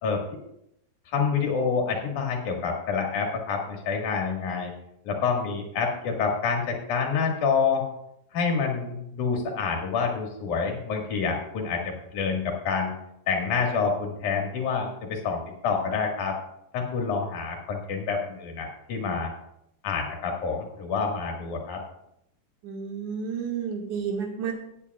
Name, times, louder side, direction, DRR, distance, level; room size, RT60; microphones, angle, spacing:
voice 1, 1.1-4.7 5.0-7.8 8.3-12.9 13.3-16.4 16.7-19.3 19.8-21.8, left 5 dB, 65° left, 1 dB, 3.2 m, -27 dB
voice 2, 22.6-24.5, right 6 dB, 65° right, 1 dB, 2.9 m, -31 dB
17.5 x 9.9 x 2.4 m, 0.77 s
omnidirectional pair, 4.0 m